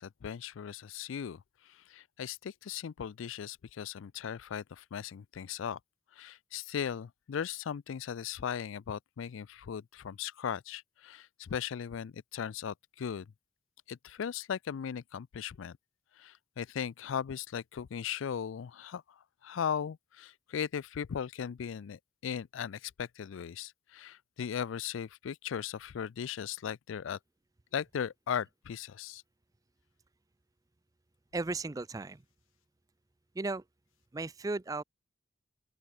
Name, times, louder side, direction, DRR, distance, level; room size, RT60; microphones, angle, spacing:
voice 1, 0.0-1.4 1.7-5.8 6.2-13.3 13.9-15.8 16.2-19.0 19.4-27.2 27.7-29.2, left 8 dB, 80° left, 0.4 m, -38 dB
voice 2, 31.3-32.2 33.3-33.6 34.1-34.8, right 3 dB, 20° right, 0.4 m, -35 dB
open air
head